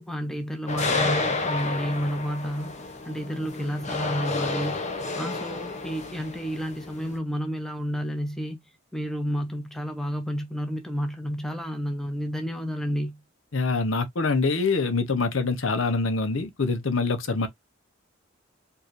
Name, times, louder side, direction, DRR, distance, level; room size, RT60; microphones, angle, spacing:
voice 1, 0.0-4.8 5.2-8.6 8.9-13.2, equal, ahead, 0.7 m, -31 dB
sound 1, 0.7-7.2, left 3 dB, 35° left, 1.0 m, -30 dB
voice 2, 13.5-17.5, left 3 dB, 85° left, 0.9 m, -25 dB
4.6 x 2.6 x 3.2 m
head